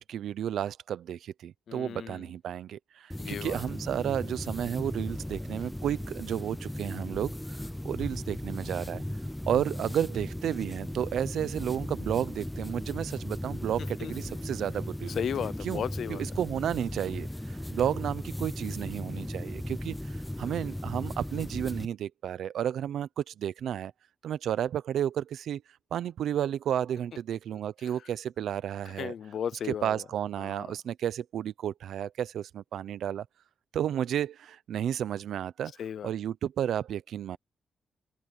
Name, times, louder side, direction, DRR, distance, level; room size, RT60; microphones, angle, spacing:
voice 1, 0.0-7.6 7.8-9.0 9.5-15.2 15.6-15.8 16.1-23.9 24.2-25.6 25.9-29.1 29.8-33.3 33.7-35.7 36.0-37.4, right 10 dB, 85° right, 0.7 m, -32 dB
voice 2, 1.7-2.3 3.2-3.6 14.0-14.4 15.1-16.2 27.8-27.9 28.9-30.0 30.4-30.8 35.8-36.1, left 8 dB, 65° left, 0.6 m, -35 dB
sound 1, 3.1-21.9, left 1 dB, 5° left, 0.6 m, -37 dB
open air
wide cardioid pair, 140°, 0 cm